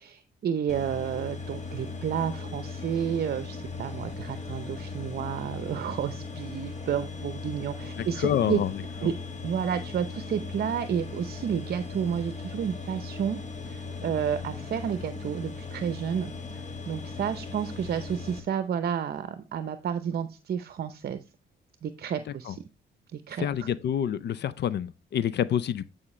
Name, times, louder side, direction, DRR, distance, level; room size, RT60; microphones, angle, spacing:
voice 1, 0.0-8.6 9.0-9.1 9.4-13.4 13.7-21.2 21.8-22.6 23.1-23.7, right 8 dB, 55° right, 0.7 m, -31 dB
sound 1, 0.7-18.4, left 4 dB, 35° left, 1.8 m, -38 dB
voice 2, 8.0-8.7 9.0-9.1 22.5-22.6 23.4-25.9, left 9 dB, 60° left, 0.6 m, -28 dB
9.7 x 5.1 x 3.1 m
cardioid pair, 90°, 20 cm